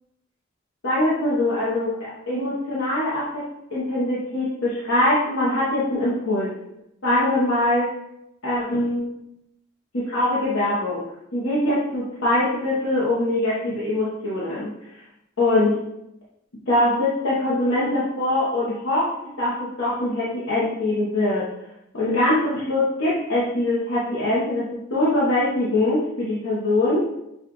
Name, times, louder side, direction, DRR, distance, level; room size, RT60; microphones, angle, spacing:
voice 1, 0.8-3.4 3.7-6.5 7.0-7.9 8.4-9.1 9.9-11.0 11.3-14.7 15.4-15.7 16.7-19.1 19.4-21.5 21.9-27.1, left 1 dB, 85° left, -8 dB, 1.0 m, -22 dB
5.6 x 2.4 x 2.9 m, 0.82 s
head